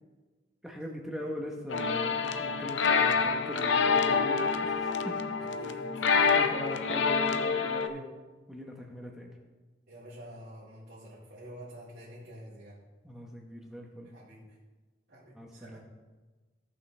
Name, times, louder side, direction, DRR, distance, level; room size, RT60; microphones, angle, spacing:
voice 1, 0.6-5.2 5.7-5.8 6.2-8.1 8.5-9.3 13.0-14.1 15.3-15.9, equal, 5° right, 0 dB, 0.9 m, -41 dB
sound 1, 1.7-7.9, left 5 dB, 90° left, 0.5 m, -27 dB
voice 2, 5.6-6.4 9.9-12.8 14.1-14.5 15.1-15.8, right 1 dB, 65° right, -8 dB, 2.1 m, -48 dB
15.5 x 5.6 x 3.3 m, 1.3 s
head